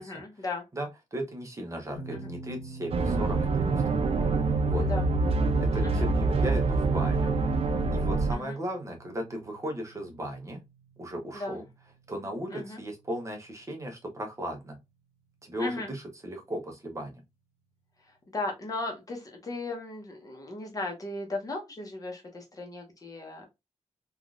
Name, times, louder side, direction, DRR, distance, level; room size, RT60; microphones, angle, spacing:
voice 1, 0.0-0.6 2.1-2.3 4.8-5.1 5.8-5.9 8.3-8.6 11.3-11.6 12.5-12.8 15.6-15.9 18.3-23.5, left 2 dB, 30° left, 1 dB, 0.8 m, -36 dB
voice 2, 0.7-3.8 4.6-4.8 5.7-7.3 7.9-10.6 11.0-11.7 12.1-14.8 15.4-17.2, equal, 25° right, 2 dB, 0.7 m, -36 dB
sound 1, 1.9-14.9, right 3 dB, 75° left, 0.9 m, -49 dB
sound 2, 2.9-8.3, right 3 dB, 60° right, 0.5 m, -25 dB
3.5 x 2.3 x 2.4 m, 0.22 s
wide cardioid pair, 175°, 11 cm